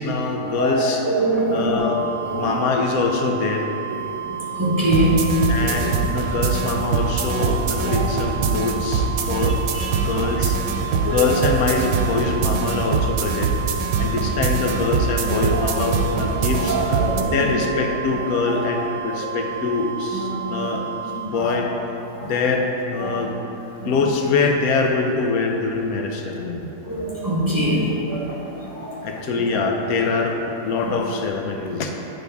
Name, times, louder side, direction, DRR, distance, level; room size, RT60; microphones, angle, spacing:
voice 1, 0.0-1.1 1.5-2.0 2.3-3.7 5.5-9.6 9.9-10.6 11.0-13.6 14.0-16.8 17.2-20.8 21.2-21.7 22.2-23.3 23.8-26.7 29.0-31.9, left 4 dB, 85° left, 2 dB, 1.1 m, -23 dB
voice 2, 0.6-1.8 2.2-2.6 4.0-5.8 7.3-7.5 7.8-8.1 8.6-8.7 9.2-10.1 10.8-11.4 12.1-12.3 15.2-15.6 15.8-17.4 18.2-18.5 19.1-19.3 20.1-20.7 21.3-21.6 22.0-22.4 23.0-23.2 23.8-23.9 26.8-29.0 29.4-29.6 30.8-30.9, right 1 dB, 15° right, -8 dB, 1.0 m, -25 dB
sound 1, 1.8-21.3, right 10 dB, 45° right, 0.7 m, -32 dB
sound 2, 4.8-17.2, right 4 dB, 90° right, 1.1 m, -24 dB
9.5 x 3.8 x 3.5 m, 2.9 s
omnidirectional pair, 1.5 m